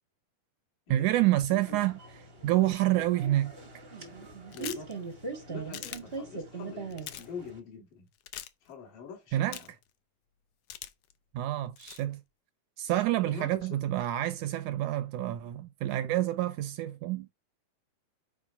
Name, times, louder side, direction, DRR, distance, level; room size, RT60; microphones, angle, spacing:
voice 1, 0.9-1.9 2.4-3.5 9.3-9.6 11.3-12.2 12.8-17.3, right 14 dB, 80° right, 1.9 m, -28 dB
voice 2, 1.5-1.8 4.5-4.9 5.5-8.1 8.6-9.7 13.3-13.9, left 5 dB, 70° left, 4.1 m, -45 dB
sound 1, 1.5-7.6, right 3 dB, 55° right, 0.6 m, -41 dB
sound 2, 4.5-4.9 5.7-6.0 6.9-7.3 8.3-8.5 9.5-9.8 10.7-11.1 11.8-12.0, left 12 dB, 85° left, 1.4 m, -41 dB
7.4 x 5.1 x 3.9 m
omnidirectional pair, 3.9 m